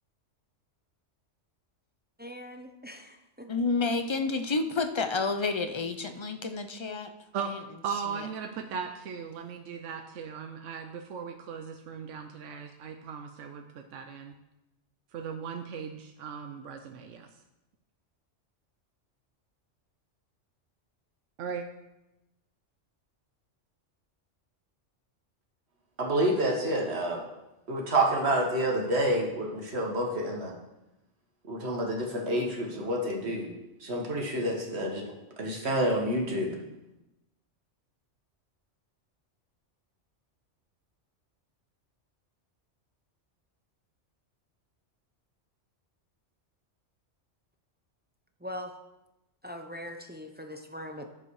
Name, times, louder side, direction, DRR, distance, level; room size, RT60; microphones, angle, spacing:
voice 1, 2.2-3.5 48.4-48.7 49.4-51.1, left 1 dB, 10° right, 4 dB, 0.6 m, -41 dB
voice 2, 3.5-7.1 7.4-7.6 8.2-8.3, left 4 dB, 35° left, 8 dB, 0.5 m, -30 dB
voice 3, 7.8-14.3 15.1-17.3 21.4-21.7, right 6 dB, 85° right, 5 dB, 1.0 m, -38 dB
voice 4, 26.0-27.2 27.7-30.5 31.5-33.5 33.8-36.6, right 1 dB, 60° right, -1 dB, 2.0 m, -28 dB
10.0 x 7.0 x 4.8 m, 0.95 s
omnidirectional pair, 1.2 m